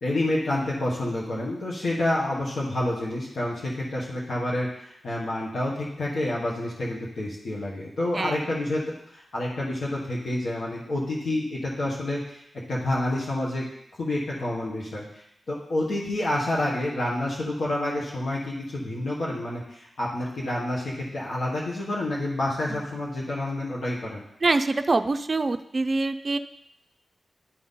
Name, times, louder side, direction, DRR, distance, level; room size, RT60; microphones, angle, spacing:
voice 1, 0.0-12.4 12.7-13.6 14.0-24.2, left 1 dB, 80° left, -5 dB, 1.4 m, -28 dB
voice 2, 24.4-26.4, right 3 dB, 45° right, 9 dB, 0.4 m, -25 dB
11.5 x 4.1 x 3.8 m, 0.76 s
cardioid pair, 75°, 0 cm